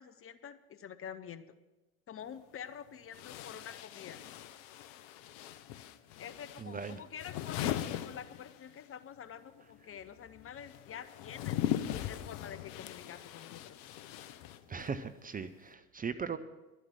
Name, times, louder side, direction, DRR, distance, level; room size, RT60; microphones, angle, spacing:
voice 1, 0.0-1.4 2.1-4.2 6.2-11.7 12.1-13.8, left 8 dB, 30° left, 13 dB, 0.8 m, -47 dB
sound 1, 2.2-2.3 3.1-8.9 9.2-15.0, left 11 dB, 60° left, 0.9 m, -40 dB
voice 2, 6.6-7.0 14.7-16.4, right 6 dB, 20° right, 10 dB, 0.6 m, -38 dB
11.5 x 9.3 x 7.5 m, 1.1 s
hypercardioid pair, 70°, 43 cm